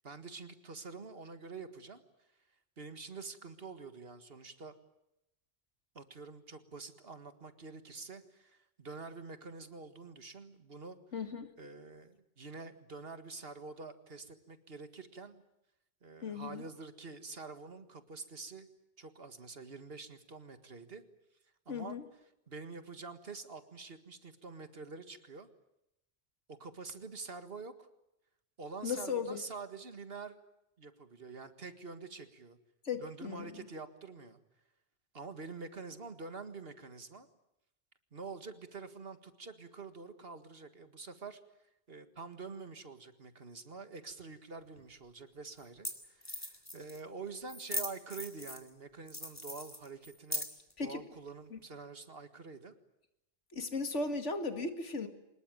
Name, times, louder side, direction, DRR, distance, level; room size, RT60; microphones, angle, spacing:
voice 1, 0.0-2.0 2.8-4.7 5.9-11.0 11.6-15.4 16.0-18.7 19.0-21.0 21.7-22.0 22.5-25.5 26.5-27.9 28.6-30.4 30.8-32.6 33.0-34.4 35.1-37.3 38.1-41.4 41.9-50.5 50.8-52.7, right 4 dB, 55° right, 9 dB, 2.0 m, -47 dB
voice 2, 11.1-11.5 16.2-16.6 21.7-22.0 28.8-29.4 32.8-33.5 50.8-51.0 51.5-51.6 53.5-55.1, left 4 dB, 80° left, 8 dB, 2.4 m, -36 dB
sound 1, 44.8-44.9 45.6-45.7 45.8-45.9 46.2-47.0 47.5-48.7 49.1-50.7, left 1 dB, 15° left, 3.3 m, -39 dB
24.5 x 21.0 x 9.2 m, 0.86 s
omnidirectional pair, 1.2 m